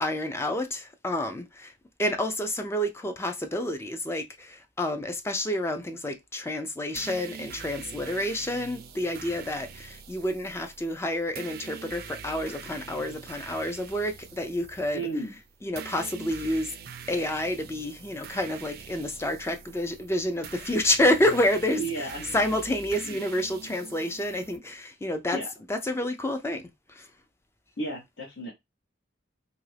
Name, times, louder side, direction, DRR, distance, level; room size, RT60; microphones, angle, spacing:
voice 1, 0.0-1.7 2.0-15.0 15.6-16.7 17.1-21.8 22.3-25.4 25.7-26.6 26.9-27.1, left 1 dB, 15° left, 0.4 m, -29 dB
sound 1, 7.0-24.6, right 7 dB, 55° right, 0.4 m, -44 dB
voice 2, 14.9-15.3 21.8-22.4 23.0-23.2 25.3-25.5 27.8-28.5, right 2 dB, 75° left, 0.9 m, -33 dB
2.7 x 2.5 x 3.3 m
head